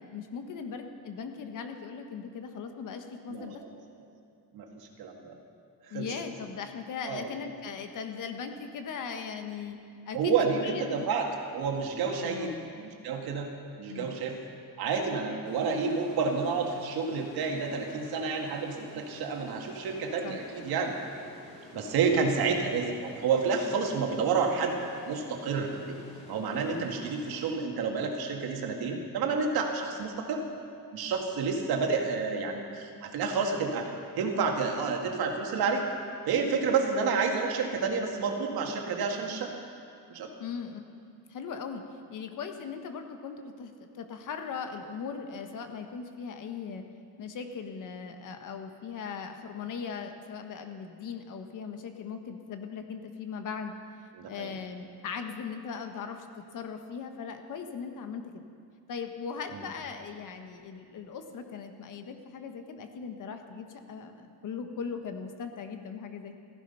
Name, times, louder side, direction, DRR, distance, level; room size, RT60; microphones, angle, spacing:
voice 1, 0.0-3.6 5.9-9.8 10.1-11.0 12.1-12.7 13.9-14.2 20.2-20.4 26.8-27.0 40.4-40.8 41.3-41.8 42.1-46.8 47.2-53.7 54.3-56.3 56.5-58.4 58.9-66.3, left 6 dB, 55° left, 6 dB, 1.3 m, -39 dB
voice 2, 4.5-5.4 5.9-6.1 7.0-7.3 10.1-13.5 13.8-14.4 14.8-21.0 21.7-24.8 25.1-26.0 26.3-30.4 30.9-33.9 34.2-35.8 36.3-39.5 40.1-40.3 54.2-54.5 59.5-59.6, right 5 dB, 70° right, 2 dB, 2.1 m, -29 dB
sound 1, 15.4-27.5, left 1 dB, 15° left, 2.9 m, -50 dB
15.5 x 15.0 x 5.6 m, 2.4 s
cardioid pair, 180°, 39 cm